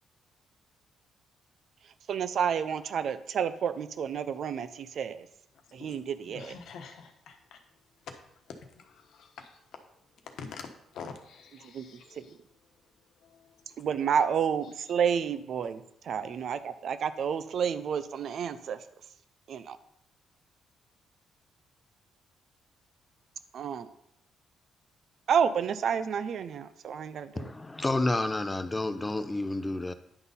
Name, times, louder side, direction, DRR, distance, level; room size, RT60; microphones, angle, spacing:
voice 1, 2.1-5.3 5.7-6.5 11.7-11.8 12.2-12.3 13.8-18.8 19.5-19.8 23.5-23.9 25.3-27.5, right 7 dB, 60° right, 12 dB, 0.6 m, -30 dB
voice 2, 5.7-7.6 8.0-8.1 8.5-9.8 10.2-12.5 13.2-13.8 14.3-14.7, left 5 dB, 70° left, 5 dB, 1.1 m, -47 dB
voice 3, 27.4-29.9, left 2 dB, 15° left, 10 dB, 0.7 m, -30 dB
9.9 x 4.0 x 5.5 m, 0.77 s
cardioid pair, 90°, 0 cm